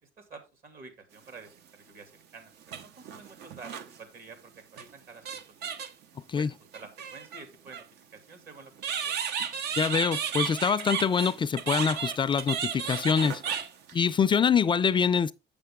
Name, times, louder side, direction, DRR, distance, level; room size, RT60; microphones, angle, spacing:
voice 1, 0.0-5.7 6.3-7.9 8.1-8.7 9.0-9.2, right 4 dB, 60° right, 2.6 m, -49 dB
sound 1, 1.5-1.6 2.6-4.0 4.8-4.9 5.2-6.0 6.7-7.8 8.8-14.1, right 7 dB, 75° right, 0.8 m, -33 dB
voice 2, 9.8-13.4 13.9-15.3, left 6 dB, 30° left, 0.3 m, -25 dB
7.8 x 6.7 x 3.5 m
cardioid pair, 110°, 17 cm